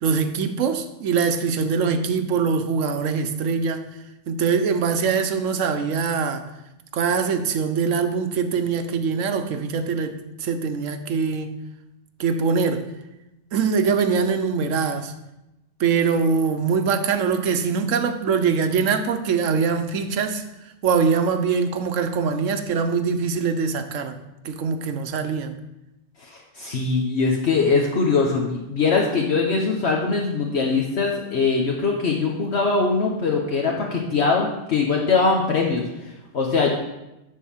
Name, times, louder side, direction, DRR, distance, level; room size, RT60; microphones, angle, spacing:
voice 1, 0.0-3.9 4.3-6.4 6.9-11.5 12.2-12.9 13.5-15.1 15.8-20.4 20.8-24.2 24.4-25.6, right 5 dB, 90° right, 1.2 m, -23 dB
voice 2, 26.2-36.7, left 4 dB, 60° left, 1.2 m, -22 dB
11.0 x 3.7 x 7.1 m
omnidirectional pair, 1.3 m